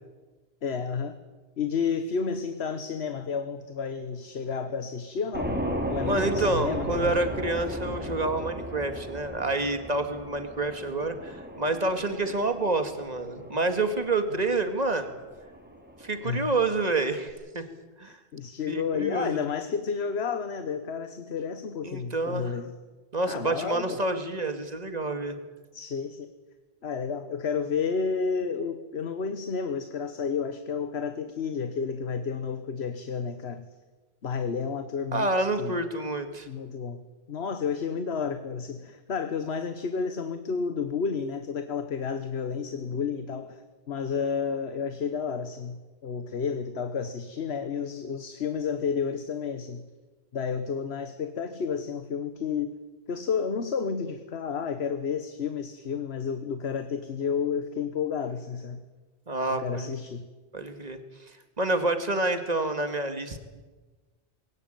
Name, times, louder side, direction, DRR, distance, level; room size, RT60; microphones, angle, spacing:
voice 1, 0.6-1.2 1.6-5.6 5.9-7.2 14.3-14.4 16.2-16.5 18.0-22.7 23.3-24.0 25.7-26.3 26.8-33.6 34.2-35.3 35.6-35.7 36.5-37.0 37.3-43.6 43.9-49.8 50.3-52.7 53.1-58.8 59.5-60.2, left 6 dB, 65° left, 9 dB, 1.4 m, -31 dB
sound 1, 5.3-17.3, equal, 10° right, 3.5 m, -36 dB
voice 2, 6.0-15.1 16.0-17.7 18.0-18.2 18.7-19.4 21.8-22.5 23.1-25.4 35.1-36.5 59.3-59.9 60.5-61.0 61.6-63.4, right 2 dB, 35° right, 8 dB, 2.2 m, -28 dB
21.5 x 18.0 x 9.2 m, 1.2 s
omnidirectional pair, 1.2 m